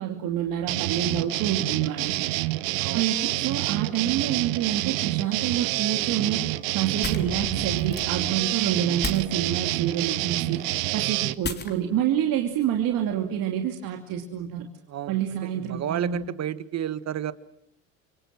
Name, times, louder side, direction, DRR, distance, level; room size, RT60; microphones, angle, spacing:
voice 1, 0.0-2.3 2.9-6.5 6.7-10.6 10.9-14.7 15.1-16.3, right 10 dB, 60° right, 3 dB, 2.8 m, -28 dB
sound 1, 0.7-11.3, right 19 dB, 80° right, 1.0 m, -27 dB
sound 2, 5.8-13.3, left 4 dB, 25° left, 3.6 m, -40 dB
sound 3, 7.1-9.3 9.6-9.7, right 1 dB, ahead, 1.5 m, -40 dB
voice 2, 15.7-17.3, right 10 dB, 45° right, 14 dB, 1.6 m, -31 dB
28.0 x 24.0 x 7.6 m, 0.78 s
supercardioid pair, 90°, 39 cm